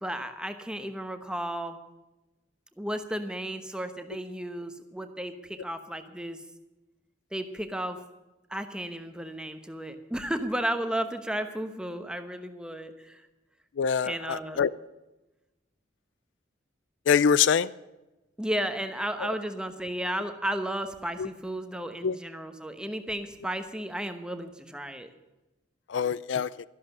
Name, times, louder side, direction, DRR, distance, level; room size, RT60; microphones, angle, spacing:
voice 1, 0.0-1.8 2.8-6.4 7.3-8.0 8.5-13.2 14.0-14.6 18.4-25.1, right 1 dB, 5° right, 8 dB, 1.1 m, -33 dB
voice 2, 13.8-14.7 17.1-17.7 21.2-21.3 22.0-22.1 25.9-26.5, left 7 dB, 75° left, 19 dB, 0.4 m, -24 dB
13.0 x 12.0 x 6.7 m, 1.0 s
head